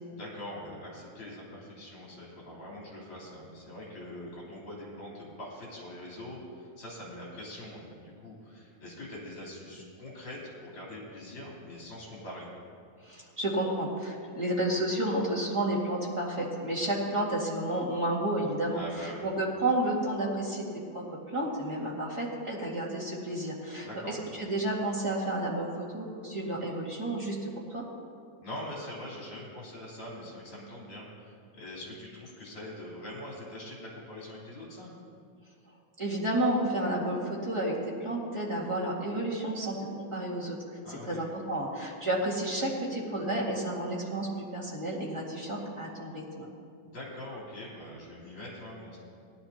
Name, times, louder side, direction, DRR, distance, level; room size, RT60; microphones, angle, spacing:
voice 1, 0.1-12.5 18.7-19.2 23.8-24.3 28.4-34.9 40.8-41.2 46.8-49.0, left 1 dB, 45° left, -6 dB, 4.4 m, -43 dB
voice 2, 13.0-20.6 20.9-21.0 21.3-27.8 36.0-40.6 40.9-46.4, right 1 dB, 10° right, -5 dB, 1.5 m, -31 dB
18.0 x 12.0 x 2.9 m, 2.3 s
omnidirectional pair, 3.4 m